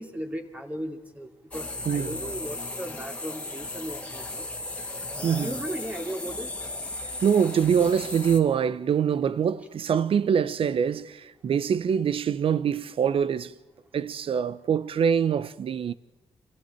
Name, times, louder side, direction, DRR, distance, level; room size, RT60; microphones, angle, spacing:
voice 1, 0.0-4.5 5.4-6.5, right 1 dB, 10° right, 2.7 m, -36 dB
sound 1, 1.5-8.4, left 2 dB, 10° left, 2.4 m, -36 dB
voice 2, 1.9-2.2 5.2-5.5 7.0-13.5 13.9-15.9, right 7 dB, 55° right, 0.9 m, -24 dB
28.5 x 26.5 x 4.5 m
wide cardioid pair, 155°, 11 cm